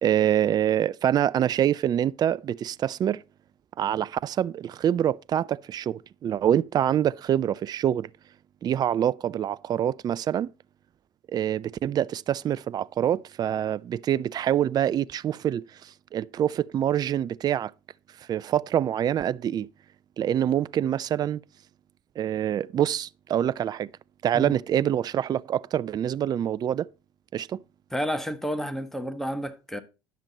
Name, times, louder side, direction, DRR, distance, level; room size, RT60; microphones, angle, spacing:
voice 1, 0.0-3.2 3.8-8.1 8.6-10.5 11.3-17.7 18.3-19.7 20.2-21.4 22.2-23.9 24.2-26.9 27.3-27.6, right 10 dB, 35° right, 0.4 m, -25 dB
voice 2, 27.9-29.8, equal, 5° left, 1.4 m, -30 dB
10.5 x 7.5 x 4.2 m
hypercardioid pair, 70°, 11 cm